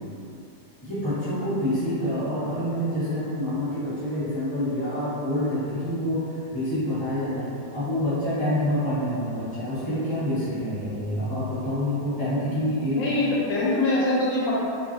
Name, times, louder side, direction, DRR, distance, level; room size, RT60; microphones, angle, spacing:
voice 1, 0.8-13.0, left 1 dB, 5° left, -14 dB, 1.1 m, -27 dB
voice 2, 12.9-14.5, left 2 dB, 80° left, -6 dB, 1.3 m, -23 dB
3.0 x 2.6 x 2.6 m, 2.7 s
omnidirectional pair, 1.9 m